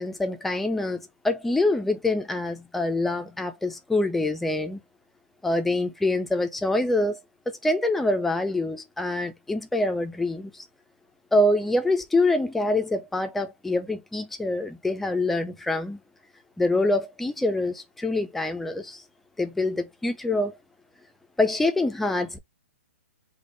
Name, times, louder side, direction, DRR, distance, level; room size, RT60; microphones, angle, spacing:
voice 1, 0.0-4.8 5.4-7.2 7.5-10.6 11.3-16.0 16.6-19.0 19.4-20.6 21.4-22.4, left 2 dB, 5° left, 0.4 m, -25 dB
3.5 x 2.2 x 3.8 m
hypercardioid pair, 165°, 7 cm